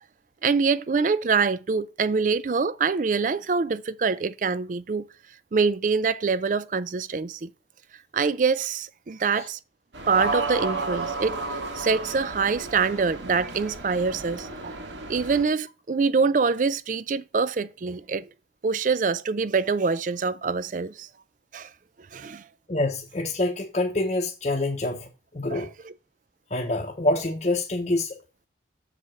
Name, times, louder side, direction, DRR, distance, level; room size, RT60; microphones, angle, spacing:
voice 1, 0.4-5.1 5.5-7.5 8.1-9.6 10.1-11.4 11.7-18.3 18.6-21.1 21.5-21.7 22.1-22.4 25.5-25.9, right 5 dB, 45° right, 0.4 m, -25 dB
sound 1, 9.9-15.4, right 3 dB, 85° right, 1.6 m, -32 dB
voice 2, 22.7-25.7 26.5-28.2, left 2 dB, 40° left, 0.9 m, -26 dB
7.0 x 4.9 x 5.7 m
head